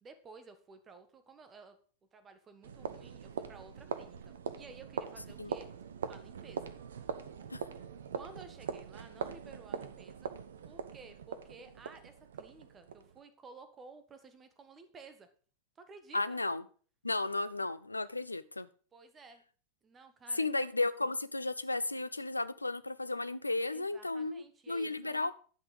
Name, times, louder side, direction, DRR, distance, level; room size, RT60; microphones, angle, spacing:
voice 1, 0.0-1.8 2.1-5.7 6.1-6.7 8.1-10.3 10.7-15.3 15.7-16.4 18.9-19.4 19.8-20.5 23.7-25.3, right 4 dB, 20° right, 9 dB, 1.4 m, -54 dB
sound 1, 2.6-13.2, right 7 dB, 65° right, 0.9 m, -42 dB
voice 2, 16.1-16.6 17.0-18.7 20.3-25.3, left 2 dB, 85° left, 15 dB, 0.5 m, -34 dB
10.5 x 6.0 x 5.1 m, 0.41 s
figure-of-eight pair, 90°, 0 cm